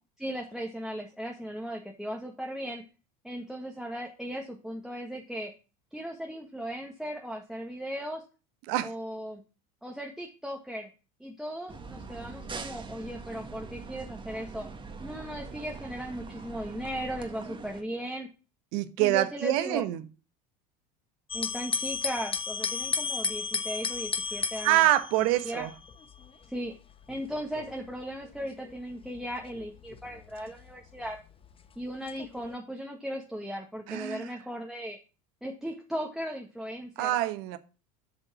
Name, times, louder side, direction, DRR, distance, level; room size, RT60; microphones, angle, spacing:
voice 1, 0.2-2.8 3.2-5.5 5.9-8.2 8.8-9.4 9.8-10.9 11.2-14.6 15.0-18.3 19.0-19.8 21.3-24.9 25.4-25.7 26.5-26.7 27.1-31.2 31.7-35.0 35.4-37.2, equal, ahead, 1.6 m, -37 dB
sound 1, 11.7-17.8, right 4 dB, 25° right, 1.8 m, -42 dB
voice 2, 18.7-20.0 24.6-25.7 33.9-34.2 37.0-37.6, right 15 dB, 65° right, 1.2 m, -26 dB
sound 2, 21.3-31.4 32.1-32.5, left 5 dB, 25° left, 1.1 m, -34 dB
8.4 x 5.2 x 6.2 m
hypercardioid pair, 85°, 20 cm